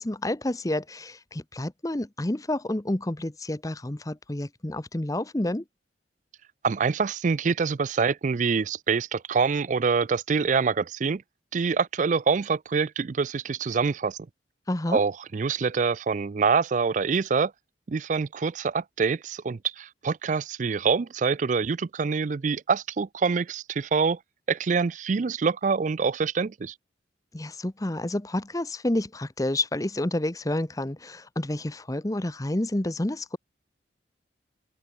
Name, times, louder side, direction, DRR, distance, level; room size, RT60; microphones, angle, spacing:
voice 1, 0.0-5.6 14.7-15.0 27.3-33.4, left 1 dB, 20° left, 0.8 m, -29 dB
voice 2, 6.6-11.2 11.5-14.2 14.9-17.5 17.9-24.2 24.5-26.7, right 5 dB, 40° right, 0.4 m, -25 dB
head